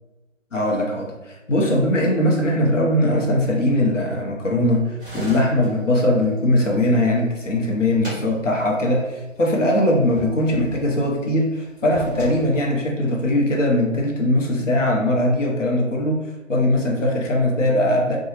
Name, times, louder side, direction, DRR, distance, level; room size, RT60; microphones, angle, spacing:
voice 1, 0.5-18.2, left 1 dB, 65° left, 0 dB, 0.8 m, -20 dB
sound 1, 5.0-7.1 7.5-8.9 9.2-9.3 9.9-11.1 11.7-12.4, right 1 dB, 5° left, 1.3 m, -37 dB
2.8 x 2.3 x 3.0 m, 1.0 s
figure-of-eight pair, 155°, 40 cm